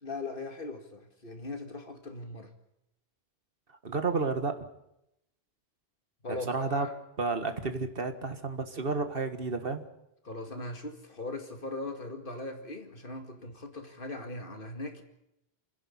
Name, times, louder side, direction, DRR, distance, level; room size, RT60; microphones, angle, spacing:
voice 1, 0.0-2.5 6.2-6.9 10.2-15.0, left 2 dB, 60° left, 6 dB, 2.4 m, -39 dB
voice 2, 3.8-4.7 6.5-6.9 7.2-9.9, right 3 dB, 65° right, 8 dB, 1.8 m, -31 dB
28.5 x 10.5 x 10.0 m, 0.83 s
omnidirectional pair, 1.0 m